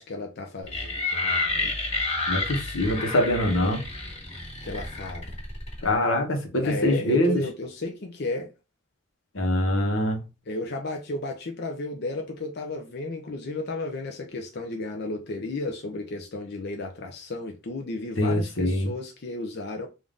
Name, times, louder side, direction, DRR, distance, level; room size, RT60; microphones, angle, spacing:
voice 1, 0.0-1.7 4.6-5.3 6.6-8.5 10.5-19.9, left 2 dB, 55° left, 0.6 m, -33 dB
sound 1, 0.7-5.9, left 3 dB, 35° left, 1.5 m, -30 dB
voice 2, 2.3-3.8 5.8-7.4 9.3-10.2 18.2-18.9, left 1 dB, 90° left, 1.1 m, -24 dB
3.6 x 2.6 x 3.6 m
head